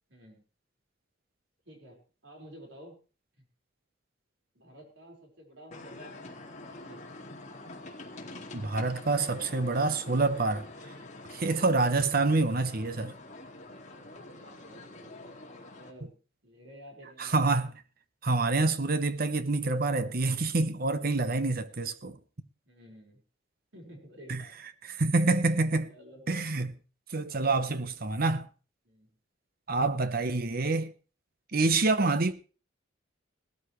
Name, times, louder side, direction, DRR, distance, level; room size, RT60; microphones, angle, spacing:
voice 1, 0.1-0.4 1.7-3.0 3.4-3.5 4.5-7.3 9.8-10.4 11.3-11.5 14.0-16.2 16.4-17.4 22.6-23.2 23.7-25.0 25.8-26.3 27.3-27.7 28.8-29.1, equal, 70° right, 4.8 m, -53 dB
sound 1, 5.7-15.9, left 2 dB, 40° left, 2.2 m, -46 dB
voice 2, 8.5-10.6 11.3-13.1 17.2-17.7 18.2-22.2 24.3-24.4 24.9-25.9 26.3-26.7 27.1-28.5 29.7-30.9 31.5-32.3, right 3 dB, 50° right, 0.9 m, -27 dB
18.0 x 13.5 x 3.2 m
head